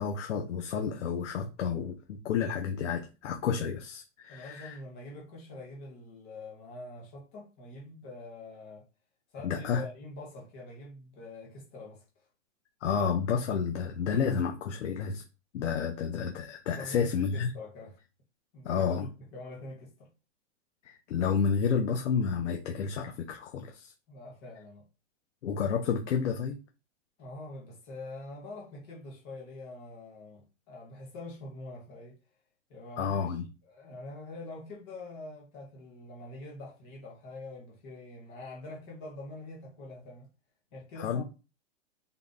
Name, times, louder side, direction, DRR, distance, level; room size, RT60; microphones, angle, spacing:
voice 1, 0.0-4.8 9.4-9.9 12.8-15.2 15.5-17.5 18.6-19.1 20.8-23.9 25.4-26.6 33.0-33.5 41.0-41.2, left 6 dB, 80° left, 0.7 m, -30 dB
voice 2, 4.3-8.8 9.3-12.0 16.7-17.9 18.5-20.1 24.1-24.9 27.2-32.2 32.7-40.3 40.7-41.2, left 2 dB, 10° left, 0.5 m, -45 dB
3.7 x 2.2 x 3.6 m
supercardioid pair, 175°, 36 cm